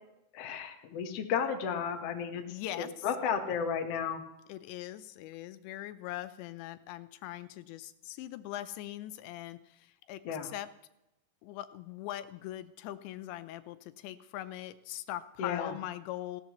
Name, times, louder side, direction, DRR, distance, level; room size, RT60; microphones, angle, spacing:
voice 1, 0.3-4.2 10.2-10.5 15.4-15.8, left 7 dB, 65° left, 3 dB, 1.5 m, -33 dB
voice 2, 2.5-3.1 4.5-10.7 11.4-16.4, left 13 dB, 90° left, 11 dB, 3.0 m, -41 dB
18.0 x 16.0 x 3.1 m, 0.89 s
omnidirectional pair, 5.0 m